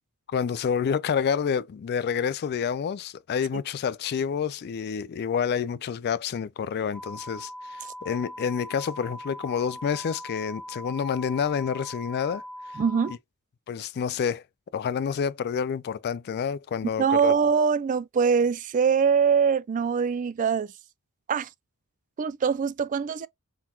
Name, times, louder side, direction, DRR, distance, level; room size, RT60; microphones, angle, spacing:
voice 1, 0.3-12.4 13.7-14.4 14.7-17.3, left 7 dB, 45° left, 0.3 m, -28 dB
sound 1, 6.9-13.2, equal, 5° right, 2.2 m, -41 dB
voice 2, 12.8-13.1 17.0-20.7 21.3-21.5 22.2-23.3, right 6 dB, 35° right, 0.3 m, -23 dB
4.3 x 3.8 x 2.3 m
head